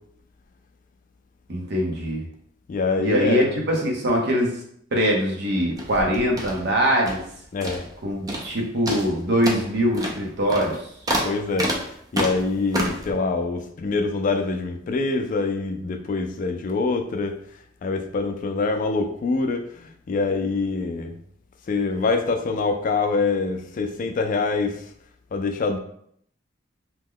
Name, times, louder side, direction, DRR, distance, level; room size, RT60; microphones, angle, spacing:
voice 1, 1.5-2.2 3.0-4.6 4.9-7.2 8.0-10.8, equal, 60° right, -1 dB, 0.8 m, -22 dB
voice 2, 2.7-3.5 7.5-7.8 11.2-11.7 12.1-17.4 17.8-21.1 21.7-24.8 25.3-25.8, left 3 dB, 45° left, 6 dB, 0.3 m, -25 dB
sound 1, 5.7-7.3 7.6-8.0 8.3-8.6 8.9-13.1, right 1 dB, 20° right, 0.4 m, -29 dB
2.9 x 2.1 x 3.6 m, 0.67 s
head